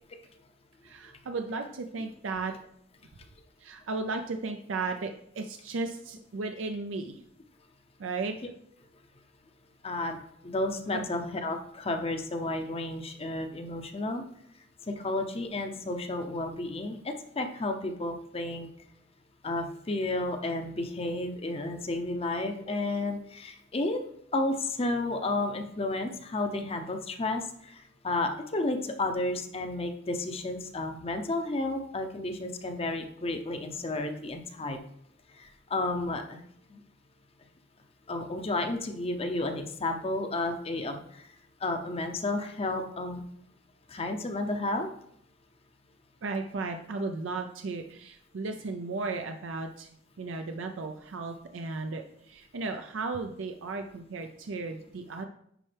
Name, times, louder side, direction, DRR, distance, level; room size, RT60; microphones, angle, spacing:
voice 1, 0.8-2.5 3.6-5.1 5.4-7.2 8.0-8.4 10.9-11.0 46.2-49.9 50.2-55.3, right 3 dB, 80° right, 5 dB, 0.5 m, -35 dB
voice 2, 9.8-14.2 14.9-18.7 19.4-24.0 24.3-34.8 35.4-36.4 36.7-36.8 38.1-41.2 41.6-43.2 43.9-44.9, left 2 dB, 30° left, 5 dB, 0.6 m, -32 dB
10.0 x 4.3 x 3.3 m, 0.71 s
head